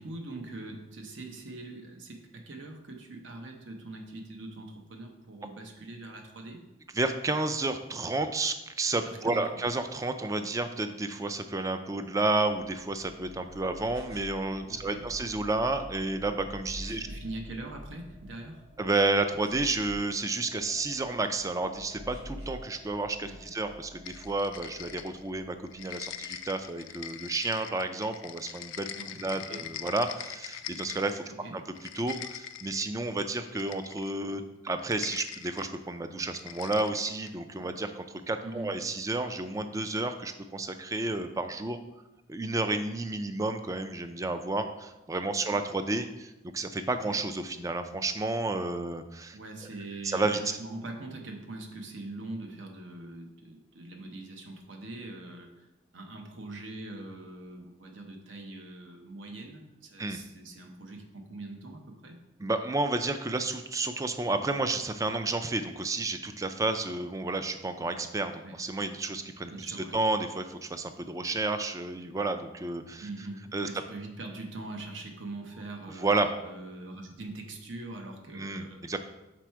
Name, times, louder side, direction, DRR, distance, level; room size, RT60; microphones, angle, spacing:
voice 1, 0.0-6.6 9.0-9.5 14.7-15.0 16.9-18.6 23.2-23.3 28.9-29.7 31.3-31.6 38.4-38.8 45.5-45.6 46.9-47.2 49.3-55.7 55.9-62.2 68.4-68.6 69.4-70.0 73.0-78.8, right 2 dB, 70° right, 3 dB, 0.8 m, -42 dB
voice 2, 7.0-17.1 18.8-28.9 29.2-31.2 31.5-31.6 32.0-41.8 42.3-49.4 50.0-50.4 60.0-60.2 62.4-73.1 73.5-73.7 76.0-76.3 78.3-79.0, right 2 dB, 15° right, 8 dB, 0.3 m, -31 dB
sound 1, 12.2-26.8, left 1 dB, 50° right, 1.7 m, -50 dB
sound 2, 13.8-14.4 16.7-17.2 19.5-20.1 21.9-22.7, equal, 90° right, 1.8 m, -43 dB
sound 3, 24.1-25.4 25.7-31.3 31.7-32.9 33.5-34.2 34.8-35.7 36.3-37.4, left 10 dB, 80° left, 0.4 m, -42 dB
6.1 x 4.2 x 4.5 m, 1.0 s
head